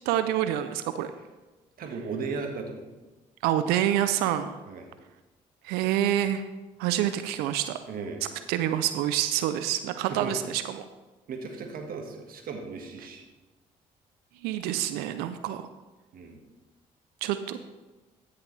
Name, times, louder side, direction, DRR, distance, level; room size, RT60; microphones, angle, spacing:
voice 1, 0.1-1.1 3.4-4.5 5.6-6.4 6.8-7.8 8.5-10.8 14.4-15.7 17.2-17.6, right 12 dB, 85° right, 10 dB, 0.5 m, -27 dB
voice 2, 1.8-2.9 4.7-4.9 7.9-8.3 10.1-10.3 11.3-13.2 16.1-16.4, right 4 dB, 65° right, 3 dB, 1.7 m, -36 dB
14.0 x 6.7 x 3.3 m, 1.2 s
supercardioid pair, 55°, 16 cm